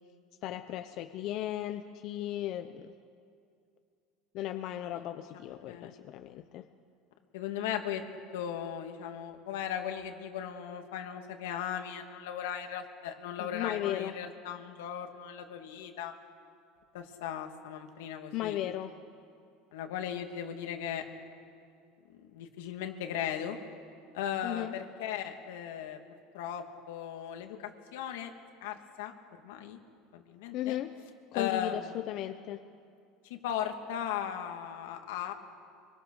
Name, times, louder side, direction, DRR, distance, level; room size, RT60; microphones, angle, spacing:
voice 1, 0.4-2.9 4.3-6.6 13.4-14.1 18.3-18.9 24.4-24.7 30.5-30.9 31.3-32.6, left 13 dB, 50° left, 8 dB, 0.9 m, -36 dB
voice 2, 5.5-6.0 7.3-8.0 8.3-16.1 16.9-18.6 19.7-21.0 22.2-23.6 24.1-28.3 28.6-29.1 29.4-29.8 30.1-30.8 31.3-32.0 33.2-35.3, left 9 dB, 90° left, 4 dB, 2.4 m, -37 dB
25.0 x 23.0 x 6.6 m, 2.4 s
supercardioid pair, 140°, 0 cm